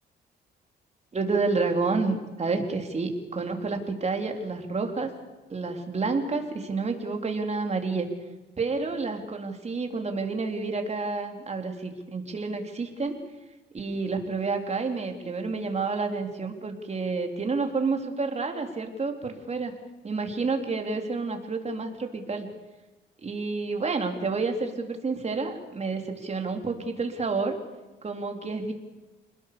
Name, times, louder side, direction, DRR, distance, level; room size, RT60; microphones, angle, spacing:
voice 1, 1.1-5.1 5.5-8.1 8.6-13.2 13.7-19.8 20.0-22.5 23.2-27.5 28.0-28.7, right 4 dB, 35° right, 4 dB, 3.9 m, -29 dB
27.5 x 20.5 x 7.0 m, 1.1 s
cardioid pair, 90°, 20 cm